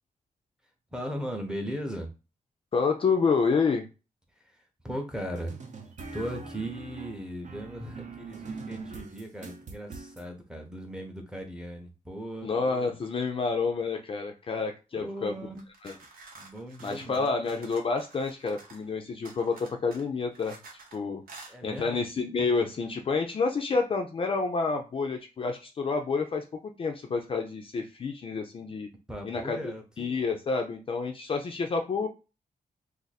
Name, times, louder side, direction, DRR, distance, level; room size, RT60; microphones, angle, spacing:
voice 1, 0.9-2.1 4.4-5.6 6.1-12.5 14.9-15.7 16.3-17.3 21.5-22.0 29.1-29.8, equal, 5° right, 3 dB, 0.7 m, -38 dB
voice 2, 2.7-3.8 12.4-15.5 15.8-16.0 16.8-20.6 20.9-21.2 21.6-28.9 29.2-29.6 30.0-32.1, left 4 dB, 35° left, 3 dB, 0.4 m, -29 dB
sound 1, 5.4-10.2, right 3 dB, 55° right, 0.7 m, -42 dB
sound 2, 15.6-18.9 19.3-21.0 21.3-21.6, right 3 dB, 85° right, 0.9 m, -50 dB
2.6 x 2.5 x 4.0 m, 0.29 s
wide cardioid pair, 175°, 15 cm